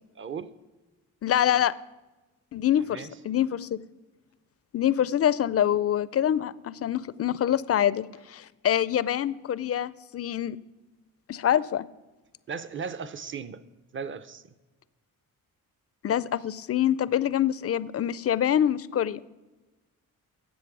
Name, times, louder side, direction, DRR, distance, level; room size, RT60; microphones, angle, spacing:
voice 1, 0.2-0.5 2.9-3.1 12.5-13.6 13.9-14.4, right 6 dB, 35° right, 0.6 m, -36 dB
voice 2, 1.2-1.8 2.5-3.8 4.7-10.6 11.3-11.9 16.0-19.2, left 10 dB, 45° left, 0.4 m, -25 dB
10.5 x 7.6 x 6.0 m
cardioid pair, 85°, 35 cm